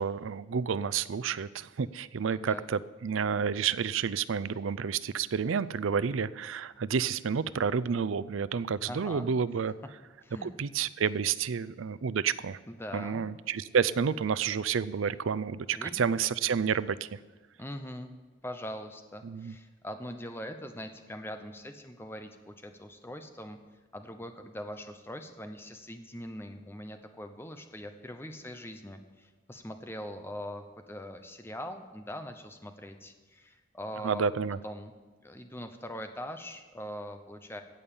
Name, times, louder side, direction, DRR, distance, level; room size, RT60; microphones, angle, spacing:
voice 1, 0.0-9.7 10.4-12.6 12.9-17.2 19.2-19.6 34.0-34.6, right 6 dB, 90° right, 17 dB, 0.5 m, -30 dB
voice 2, 2.3-2.6 8.8-9.3 10.2-10.5 12.7-13.3 15.7-16.0 17.6-18.1 18.4-23.6 23.9-34.3 34.6-34.9 35.2-37.6, equal, 10° left, 7 dB, 0.8 m, -42 dB
16.0 x 5.5 x 8.4 m, 1.3 s
head